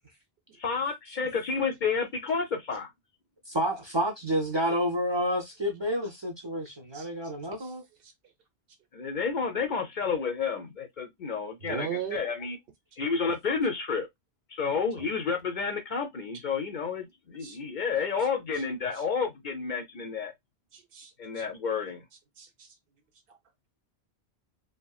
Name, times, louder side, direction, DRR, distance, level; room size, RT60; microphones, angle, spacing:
voice 1, 0.6-2.9 8.9-12.6 13.0-14.1 14.5-20.3 21.2-22.0, left 5 dB, 55° left, 0.6 m, -30 dB
voice 2, 3.5-7.8, equal, 35° right, 0.5 m, -29 dB
voice 3, 11.6-12.2 15.0-15.1 17.4-17.6 20.7-21.1 21.4-21.5 22.4-22.7 23.3-23.4, right 9 dB, 65° right, 0.8 m, -37 dB
2.8 x 2.5 x 2.2 m
omnidirectional pair, 1.1 m